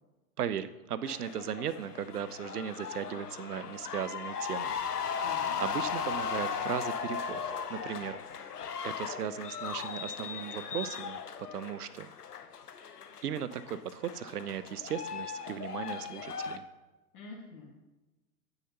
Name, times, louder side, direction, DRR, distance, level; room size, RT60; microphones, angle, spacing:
voice 1, 0.4-8.5 8.8-11.2 11.5-12.1 13.2-16.6, right 9 dB, 80° right, 14 dB, 0.6 m, -37 dB
sound 1, 1.0-16.6, left 6 dB, 85° left, 0.8 m, -37 dB
voice 2, 5.2-5.6 17.1-17.7, left 3 dB, 40° left, -4 dB, 1.7 m, -47 dB
9.2 x 6.6 x 2.9 m, 1.1 s
hypercardioid pair, 115°, 45 cm